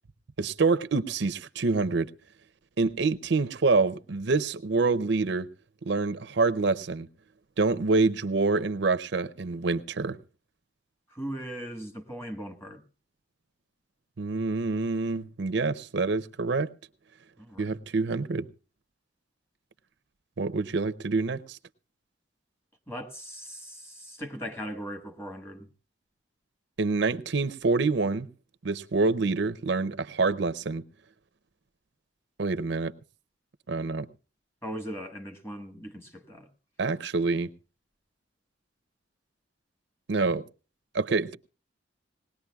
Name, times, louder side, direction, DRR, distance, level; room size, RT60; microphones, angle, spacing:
voice 1, 0.4-2.1 2.8-5.5 5.9-7.1 7.6-10.2 14.2-16.7 17.6-18.5 20.4-21.6 26.8-28.3 28.6-30.8 32.4-32.9 33.7-34.1 36.8-37.5 40.1-40.4 40.9-41.4, right 3 dB, 65° right, 0.6 m, -26 dB
voice 2, 11.1-12.8 17.4-17.8 22.9-25.7 34.6-36.5, equal, 15° left, 1.4 m, -39 dB
20.0 x 19.0 x 2.3 m
head